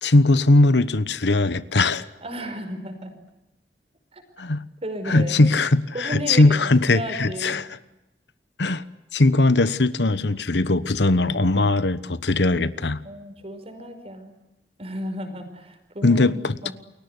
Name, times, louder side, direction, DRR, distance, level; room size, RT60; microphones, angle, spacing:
voice 1, 0.0-2.1 4.4-4.6 5.1-7.7 8.6-8.8 9.1-13.0 16.0-16.7, left 2 dB, 75° left, 15 dB, 1.2 m, -20 dB
voice 2, 2.2-3.1 4.1-4.2 4.8-5.5 5.9-7.7 13.0-14.3 14.8-16.7, equal, 35° right, 8 dB, 5.3 m, -34 dB
29.5 x 22.5 x 8.2 m, 0.95 s
head